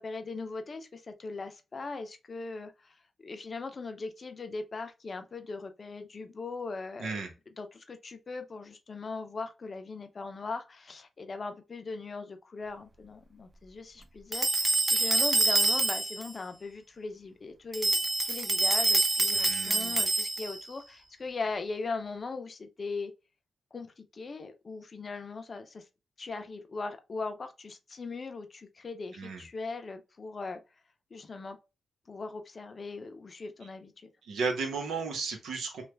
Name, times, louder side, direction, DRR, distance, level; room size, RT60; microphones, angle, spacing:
voice 1, 0.0-2.9 3.2-7.2 7.6-18.0 18.2-23.1 23.7-25.9 26.2-30.6 31.1-31.6 32.1-34.1, left 3 dB, 45° left, 0.6 m, -39 dB
voice 2, 7.0-7.3 19.3-20.0 29.1-29.4 34.2-35.8, right 4 dB, 85° right, 1.0 m, -34 dB
sound 1, 14.3-16.3 17.7-20.6, right 2 dB, 25° right, 0.4 m, -26 dB
3.3 x 2.3 x 3.2 m
cardioid pair, 80°, 0 cm